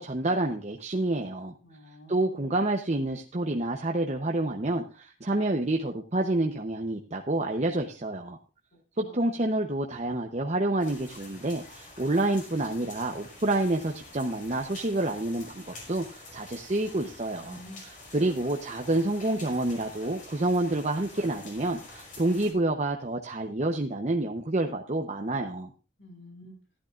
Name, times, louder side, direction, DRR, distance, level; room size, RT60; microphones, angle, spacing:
voice 1, 0.0-1.5 2.1-8.4 9.0-25.7, right 2 dB, 40° right, 2 dB, 0.9 m, -28 dB
voice 2, 1.6-2.4 8.7-9.5 17.4-17.8 18.1-18.3 26.0-26.5, left 1 dB, 85° left, 3 dB, 5.3 m, -49 dB
sound 1, 10.8-22.5, left 2 dB, 45° left, 5.0 m, -47 dB
15.5 x 11.0 x 2.5 m, 0.34 s
head